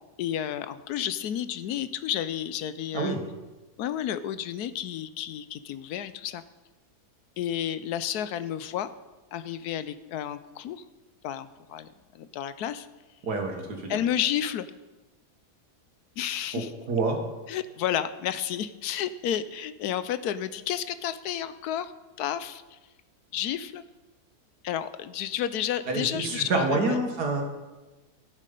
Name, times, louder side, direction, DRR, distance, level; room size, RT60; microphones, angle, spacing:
voice 1, 0.2-3.2 3.8-6.4 7.4-8.9 9.3-10.8 11.2-11.9 12.1-12.9 13.9-14.7 16.2-16.7 17.5-21.9 22.2-22.8 23.3-23.8 24.6-27.0, left 10 dB, 80° left, 13 dB, 1.1 m, -31 dB
voice 2, 13.2-14.0 16.5-16.6 16.9-17.2 25.9-27.4, right 3 dB, 75° right, 2 dB, 2.3 m, -27 dB
15.0 x 7.4 x 5.3 m, 1.2 s
omnidirectional pair, 1.7 m